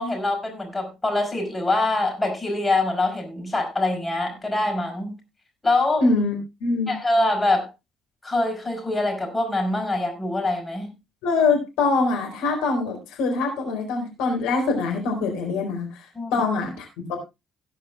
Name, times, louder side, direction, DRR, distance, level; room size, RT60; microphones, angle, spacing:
voice 1, 0.0-5.1 5.6-6.1 6.9-7.7 8.2-10.9 16.1-16.4, left 2 dB, 20° left, 4.9 m, -24 dB
voice 2, 6.0-7.0 11.2-16.0 16.3-17.2, left 3 dB, 70° left, 4.5 m, -24 dB
17.5 x 10.5 x 2.3 m
figure-of-eight pair, 50°, 0 cm